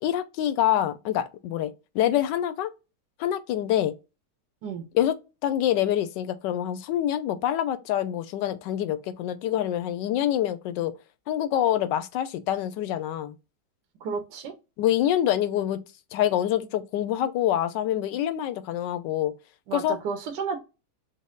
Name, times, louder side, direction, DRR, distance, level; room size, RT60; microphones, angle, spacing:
voice 1, 0.0-2.7 3.2-3.9 4.9-5.2 5.4-10.9 11.3-13.3 14.8-15.8 16.1-19.3 19.7-20.0, left 11 dB, 90° left, 1.2 m, -26 dB
voice 2, 14.0-14.5 19.7-20.6, right 5 dB, 85° right, 1.4 m, -32 dB
5.2 x 2.0 x 3.6 m
omnidirectional pair, 1.9 m